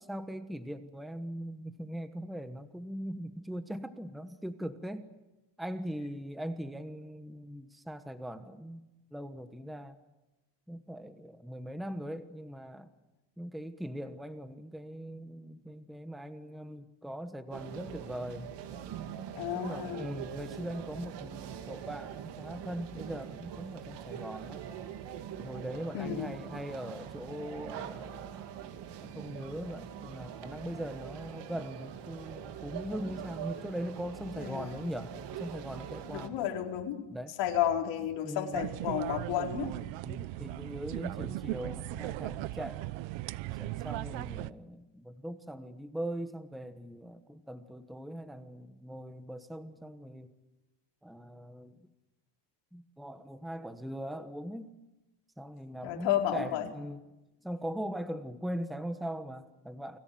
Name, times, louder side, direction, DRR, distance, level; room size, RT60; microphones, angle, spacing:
voice 1, 0.1-5.1 5.6-10.0 10.7-12.9 13.4-18.5 19.4-24.6 25.4-28.4 29.0-36.5 37.1-37.4 38.2-38.7 40.0-42.9 43.6-50.3 51.0-51.8 52.7-54.7 55.4-57.0 57.4-60.0, equal, ahead, 9 dB, 1.2 m, -40 dB
sound 1, 17.5-36.3, right 9 dB, 65° right, 2.4 m, -43 dB
voice 2, 19.4-20.1 25.9-26.4 34.4-34.7 36.1-37.0 37.4-39.7 55.8-56.7, left 10 dB, 70° left, 2 dB, 4.5 m, -32 dB
sound 2, 38.5-44.5, right 17 dB, 90° right, 0.9 m, -38 dB
30.0 x 21.0 x 7.8 m, 1.0 s
cardioid pair, 145°, 46 cm